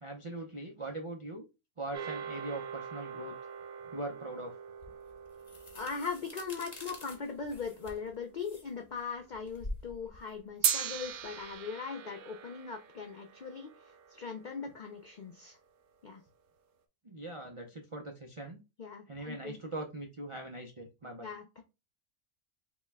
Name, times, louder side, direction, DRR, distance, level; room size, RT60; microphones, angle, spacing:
voice 1, 0.0-1.5 1.8-3.3 3.9-4.6 17.0-18.6 19.1-21.3, right 2 dB, 55° right, 0.3 m, -41 dB
sound 1, 1.9-8.4 10.6-15.1, right 8 dB, 85° right, 1.1 m, -40 dB
sound 2, 4.8-11.6, left 2 dB, 35° left, 0.9 m, -47 dB
voice 2, 5.7-15.6 16.0-16.2 18.8-19.6 21.2-21.6, left 5 dB, 70° left, 0.4 m, -40 dB
5.0 x 2.3 x 3.3 m
omnidirectional pair, 1.4 m